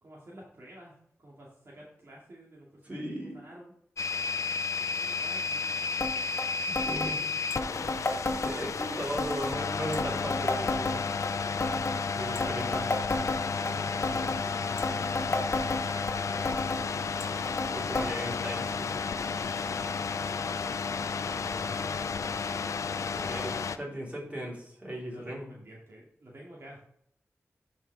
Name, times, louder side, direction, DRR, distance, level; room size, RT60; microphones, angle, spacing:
voice 1, 0.0-1.0 1.2-3.7 5.0-5.7 7.2-8.0 13.6-16.6 18.0-18.4 19.7-20.0 21.2-22.0 25.1-26.8, right 1 dB, 55° right, -4 dB, 2.3 m, -50 dB
voice 2, 2.8-3.4 6.8-7.2 8.3-11.1 12.1-12.9 17.7-18.9 22.9-25.4, equal, 25° right, -4 dB, 4.0 m, -37 dB
sound 1, 4.0-23.8, left 5 dB, 90° left, 0.5 m, -32 dB
sound 2, 6.0-6.1 6.4-6.5 6.8-7.1 7.5-8.9 9.2-9.6 9.9-11.3 11.6-12.0 12.4-13.7 14.0-14.4 14.8-16.1 16.5-16.8 17.2-17.7 18.0-18.1 18.3-18.4 19.2-19.3 20.1-20.2, left 2 dB, 50° left, 1.4 m, -31 dB
12.0 x 5.4 x 3.5 m, 0.68 s
wide cardioid pair, 80°, 5 cm